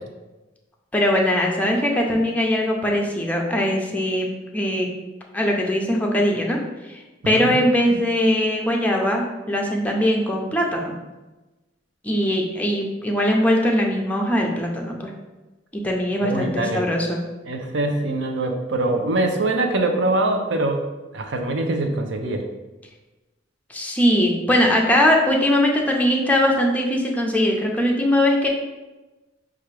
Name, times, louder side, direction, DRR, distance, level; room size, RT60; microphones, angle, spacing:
voice 1, 0.9-4.9 5.3-6.6 6.9-10.9 12.0-15.1 15.7-17.2 23.7-28.5, left 1 dB, 10° left, 0 dB, 0.5 m, -21 dB
voice 2, 16.2-16.9 17.5-20.8 21.1-22.4, right 2 dB, 75° right, 4 dB, 0.6 m, -23 dB
5.6 x 2.5 x 3.2 m, 1.1 s
head